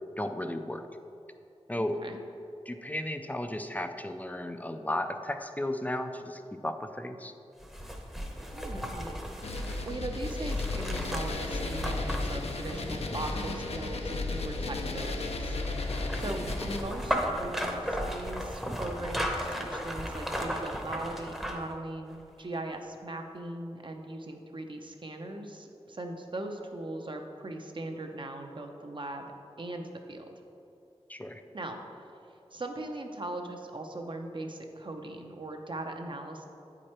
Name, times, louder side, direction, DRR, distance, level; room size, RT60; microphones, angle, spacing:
voice 1, 0.2-0.9 1.7-2.0 2.7-7.3 16.2-16.5 31.1-31.4, left 1 dB, 15° left, 7 dB, 0.4 m, -34 dB
voice 2, 1.8-2.2 8.5-9.2 9.8-15.9 16.2-29.2 29.6-30.3 31.5-31.8 32.5-36.5, right 2 dB, 50° right, 4 dB, 0.7 m, -39 dB
sound 1, 7.6-13.8 15.4-21.8 22.1-22.2, equal, 5° right, 0.8 m, -36 dB
sound 2, 9.4-16.8, left 2 dB, 70° left, 0.6 m, -34 dB
8.7 x 4.9 x 4.3 m, 2.8 s
wide cardioid pair, 70°, 11 cm